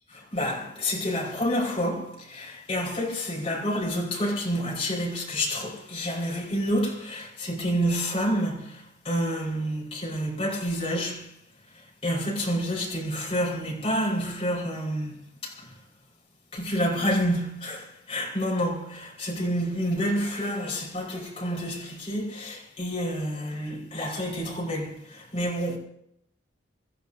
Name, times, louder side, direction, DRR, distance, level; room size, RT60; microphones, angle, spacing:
voice 1, 0.3-11.4 11.7-15.8 16.5-25.8, equal, 30° left, 5.3 m, -29 dB
25.5 x 15.0 x 2.8 m
head